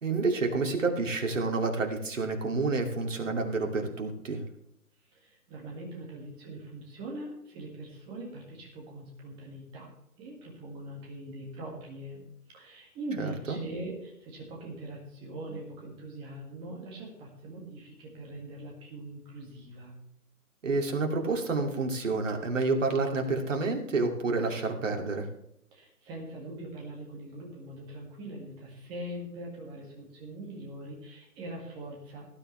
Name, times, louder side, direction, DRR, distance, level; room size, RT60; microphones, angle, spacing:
voice 1, 0.0-4.4 13.2-13.6 20.6-25.3, right 3 dB, 55° right, 3 dB, 2.7 m, -29 dB
voice 2, 5.1-9.9 10.2-12.2 12.5-19.9 25.7-32.3, right 1 dB, 10° right, -1 dB, 2.0 m, -42 dB
18.0 x 10.0 x 3.3 m, 0.77 s
figure-of-eight pair, 155°, 46 cm